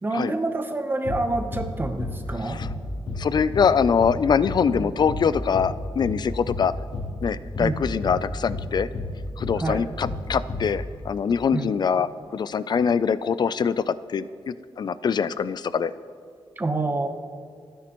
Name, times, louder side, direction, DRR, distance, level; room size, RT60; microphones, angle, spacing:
voice 1, 0.0-2.6 4.7-4.9 7.6-7.8 9.6-9.9 11.5-11.7 16.6-17.1, right 2 dB, 20° right, 6 dB, 1.0 m, -27 dB
sound 1, 1.0-1.3 1.5-1.7 2.0-2.2 2.6-2.8 3.1-3.3 3.5-3.7 4.0-4.2 4.4-4.7 5.1-5.3 5.5-5.7 6.0-6.2 6.5-6.7 6.9-7.1 7.5-7.7 8.0-8.2 8.5-8.7 8.9-9.1 9.4-9.6 10.0-10.2 10.5-10.7, left 2 dB, 80° left, 3.2 m, -31 dB
voice 2, 3.2-6.7 7.2-8.9 9.4-15.9, left 6 dB, 50° left, 15 dB, 0.4 m, -23 dB
29.0 x 10.0 x 3.1 m, 2.3 s
wide cardioid pair, 145°, 10 cm